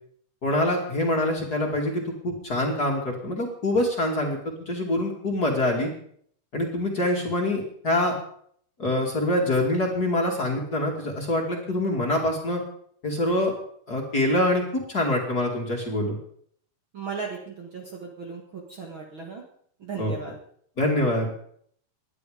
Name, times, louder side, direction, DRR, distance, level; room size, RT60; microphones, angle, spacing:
voice 1, 0.4-5.9 6.5-8.2 8.8-12.6 13.0-13.5 13.9-16.2 20.0-20.1 20.8-21.3, left 1 dB, 30° left, 0 dB, 2.7 m, -25 dB
voice 2, 16.9-19.4 19.8-20.3, right 5 dB, 40° right, 0 dB, 2.2 m, -36 dB
19.0 x 11.5 x 5.2 m, 0.63 s
omnidirectional pair, 4.1 m